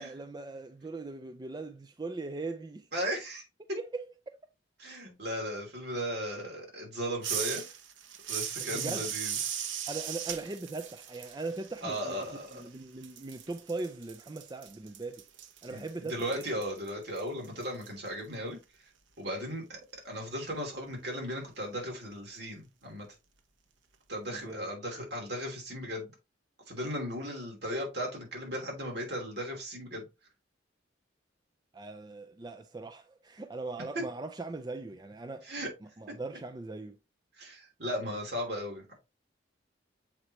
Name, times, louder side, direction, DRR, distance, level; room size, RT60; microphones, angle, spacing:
voice 1, 0.0-2.9 3.6-4.1 8.6-9.1 9.9-15.2 15.6-16.5 24.3-24.7 31.7-35.5 35.8-37.0, right 3 dB, 20° right, 0.4 m, -40 dB
voice 2, 2.9-3.4 4.8-7.6 8.3-9.4 11.8-12.6 15.7-15.8 16.1-18.6 19.2-19.8 20.0-23.1 24.1-26.1 26.7-30.0 33.9-34.0 35.4-35.7 37.4-38.9, equal, 60° right, 3.1 m, -36 dB
sound 1, 7.2-12.8 13.0-17.9, right 9 dB, 90° right, 0.9 m, -38 dB
7.4 x 4.7 x 3.0 m
head